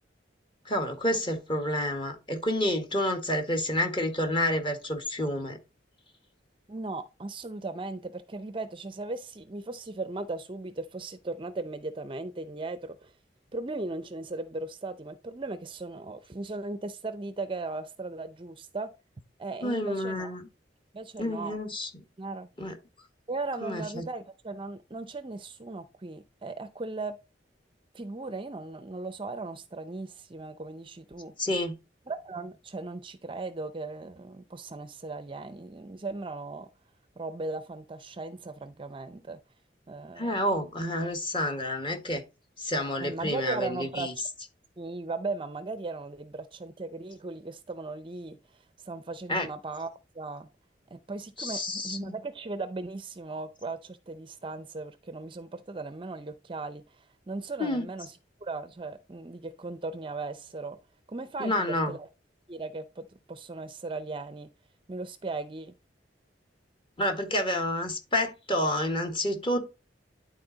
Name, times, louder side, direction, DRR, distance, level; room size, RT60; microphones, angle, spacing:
voice 1, 0.6-5.6 19.6-20.5 21.2-22.0 22.6-22.7 23.6-24.0 31.4-31.8 40.2-42.2 42.6-44.1 49.3-49.5 51.4-52.1 57.6-57.8 61.4-61.9 67.0-69.7, left 1 dB, 30° left, 1.5 m, -29 dB
voice 2, 6.7-13.1 13.5-18.9 19.4-20.4 20.9-21.6 22.2-22.5 23.3-27.2 27.9-31.3 32.1-36.7 37.2-39.4 39.9-40.3 43.0-44.1 44.8-48.4 48.9-49.9 50.1-50.5 50.9-56.8 57.3-58.1 58.4-60.8 61.1-62.1 62.5-64.5 64.9-65.7, right 3 dB, 30° right, 0.5 m, -37 dB
11.0 x 4.3 x 3.9 m
head